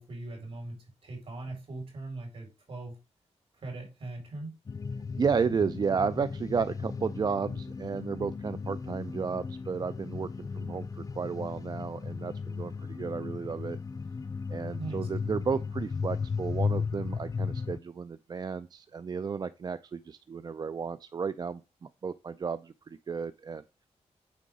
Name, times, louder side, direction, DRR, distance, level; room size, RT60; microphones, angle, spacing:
voice 1, 0.0-3.0 3.5-4.5 14.8-15.1, right 2 dB, 55° right, 4.0 m, -40 dB
sound 1, 4.7-17.8, left 5 dB, 30° left, 0.5 m, -36 dB
voice 2, 5.2-13.8 14.5-23.6, right 5 dB, 35° right, 0.3 m, -33 dB
9.2 x 3.8 x 4.8 m
wide cardioid pair, 120°, 12 cm